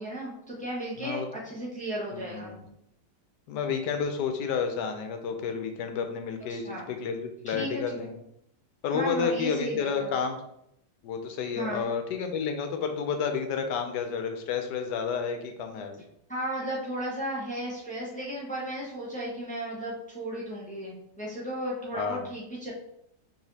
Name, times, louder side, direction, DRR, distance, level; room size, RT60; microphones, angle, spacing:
voice 1, 0.0-2.5 6.5-6.9 7.5-8.1 8.9-10.1 11.5-11.9 16.3-22.7, right 1 dB, 5° left, -5 dB, 0.8 m, -35 dB
voice 2, 1.0-1.3 2.1-2.6 3.5-8.2 8.8-10.4 11.0-16.0 21.9-22.2, left 6 dB, 75° left, 6 dB, 1.2 m, -31 dB
4.8 x 3.4 x 2.8 m, 0.76 s
omnidirectional pair, 1.9 m